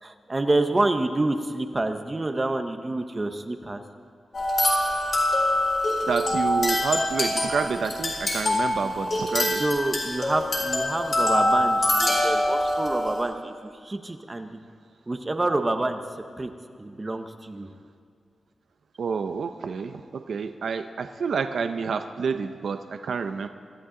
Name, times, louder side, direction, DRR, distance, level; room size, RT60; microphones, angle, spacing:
voice 1, 0.0-3.8 9.6-14.6 15.1-16.0 16.4-16.5 16.8-17.7, right 2 dB, 20° right, 7 dB, 0.7 m, -27 dB
sound 1, 4.3-13.2, left 1 dB, 35° left, 3.8 m, -24 dB
voice 2, 6.1-9.6 19.0-23.5, right 5 dB, 65° right, 8 dB, 0.6 m, -29 dB
24.5 x 14.0 x 3.8 m, 2.3 s
wide cardioid pair, 180°, 0 cm